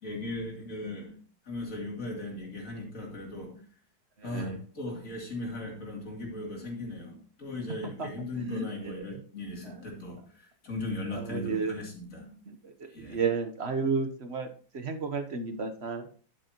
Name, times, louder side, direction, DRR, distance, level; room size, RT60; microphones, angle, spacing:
voice 1, 0.0-1.2 1.4-3.6 4.2-12.4 12.9-13.2, left 2 dB, 45° left, 0 dB, 3.2 m, -38 dB
voice 2, 4.2-4.6 8.0-8.1 8.3-9.2 9.6-9.9 11.1-11.8 12.5-14.5 14.7-16.1, right 5 dB, 45° right, 6 dB, 1.0 m, -33 dB
11.0 x 9.3 x 2.9 m, 0.42 s
omnidirectional pair, 2.0 m